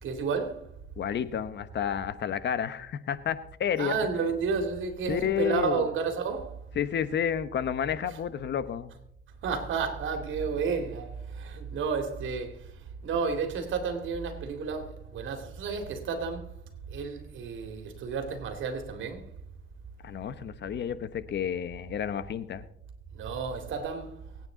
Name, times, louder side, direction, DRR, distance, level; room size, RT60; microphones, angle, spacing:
voice 1, 0.0-0.8 3.8-6.7 8.1-8.2 9.4-16.6 16.9-19.3 23.1-24.3, right 5 dB, 75° right, 2.6 m, -32 dB
voice 2, 1.0-4.0 5.1-5.8 6.8-8.9 20.0-22.7, left 8 dB, 60° left, 1.1 m, -30 dB
24.0 x 9.1 x 3.9 m
cardioid pair, 90°, 20 cm